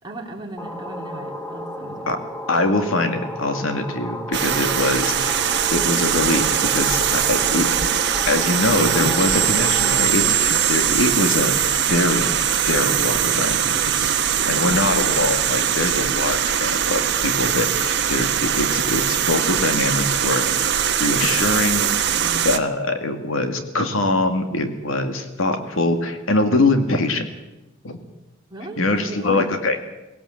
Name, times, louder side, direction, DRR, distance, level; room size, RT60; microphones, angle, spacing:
voice 1, 0.0-2.2 14.3-15.0 22.1-22.4 28.5-29.5, right 2 dB, 25° right, -1 dB, 3.5 m, -37 dB
sound 1, 0.6-10.0, left 1 dB, 10° left, 1.7 m, -33 dB
voice 2, 2.5-7.7 8.3-12.3 12.6-14.2 14.5-20.7 21.0-21.9 22.4-27.3 27.8-28.0 28.8-29.8, left 2 dB, 85° left, 6 dB, 2.2 m, -23 dB
sound 2, 4.3-22.6, right 9 dB, 60° right, 1.2 m, -21 dB
19.0 x 17.5 x 7.8 m, 1.0 s
head